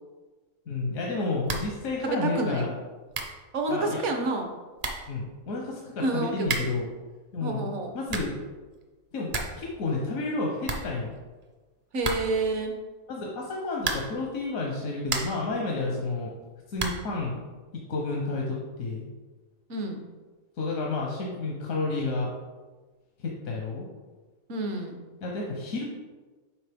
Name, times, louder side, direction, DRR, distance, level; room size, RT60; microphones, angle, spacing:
voice 1, 0.7-2.7 3.7-4.0 5.1-6.9 7.3-7.7 7.9-8.3 9.1-9.3 9.6-11.1 13.1-16.3 16.7-17.4 17.9-19.1 20.6-22.3 23.2-23.9 25.2-25.8, left 3 dB, 85° left, -2 dB, 1.3 m, -30 dB
sound 1, 1.4-1.8 2.1-2.2 2.8-2.9 3.1-3.4 4.4-4.5 4.8-5.1 6.4-6.9 7.8-8.4 8.8-8.9 9.1-9.7 9.9-10.0 10.3-10.4 10.6-11.4 12.0-12.5 13.8-14.3 14.7-15.5 16.7-17.1, right 3 dB, 45° right, 0.8 m, -33 dB
voice 2, 2.0-2.7 3.5-4.5 6.0-6.7 7.4-7.9 11.9-12.8 19.7-20.0 24.5-25.0, right 2 dB, 65° right, 4 dB, 1.2 m, -29 dB
7.7 x 4.9 x 3.5 m, 1.3 s
omnidirectional pair, 1.4 m